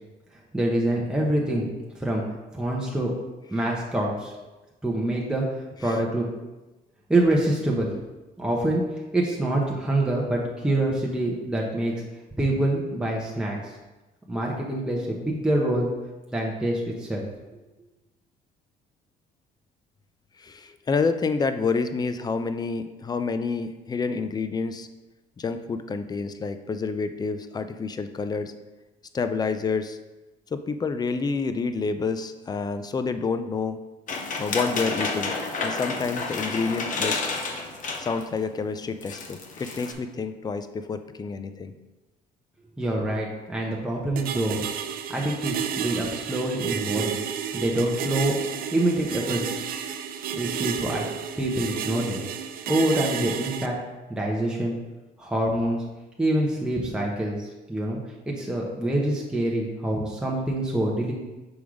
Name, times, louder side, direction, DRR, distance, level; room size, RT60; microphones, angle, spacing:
voice 1, 0.5-1.7 2.0-2.2 2.5-3.1 3.5-4.3 4.8-6.3 7.1-7.9 8.4-8.8 9.1-11.9 12.4-13.7 14.3-15.9 16.3-17.2 42.8-44.7 45.1-47.1 47.5-48.3 48.7-49.6 50.3-51.0 51.4-52.2 52.7-53.7 54.1-54.7 55.2-55.8 56.2-58.0 58.3-61.1, right 1 dB, 5° right, -3 dB, 0.9 m, -25 dB
voice 2, 20.4-24.9 25.4-28.5 29.1-30.0 30.5-33.8 34.4-35.3 35.6-37.2 38.0-41.7, left 4 dB, 25° left, 10 dB, 0.4 m, -28 dB
sound 1, 34.1-38.3 38.7-38.8 39.0-39.9, left 3 dB, 50° left, 0.9 m, -30 dB
sound 2, 44.2-53.7, right 8 dB, 60° right, 0.5 m, -31 dB
6.1 x 3.5 x 4.9 m, 1.1 s
cardioid pair, 110°, 17 cm